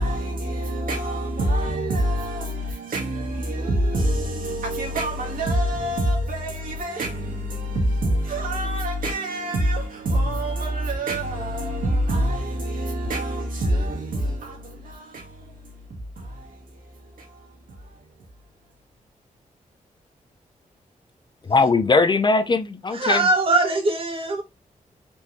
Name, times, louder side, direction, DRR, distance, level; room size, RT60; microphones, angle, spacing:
voice 1, 0.0-18.0, right 1 dB, 75° right, 1.8 m, -26 dB
voice 2, 21.4-23.3, left 3 dB, 30° left, 0.6 m, -20 dB
voice 3, 22.9-24.4, right 2 dB, 40° right, 1.8 m, -21 dB
4.4 x 3.4 x 3.0 m
cardioid pair, 80°, 14 cm